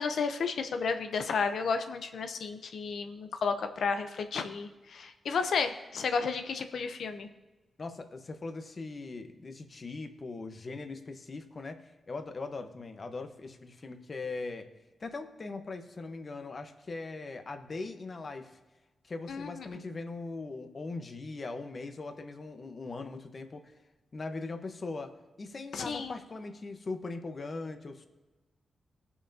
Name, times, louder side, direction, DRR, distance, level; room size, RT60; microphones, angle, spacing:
voice 1, 0.0-7.3 19.3-19.7 25.7-26.1, left 5 dB, 80° left, 8 dB, 0.8 m, -32 dB
voice 2, 7.8-14.7 15.0-18.6 19.0-23.7 24.1-25.1 25.4-28.1, left 3 dB, 45° left, 6 dB, 1.1 m, -40 dB
20.0 x 7.0 x 2.8 m, 1.2 s
cardioid pair, 70°, 0 cm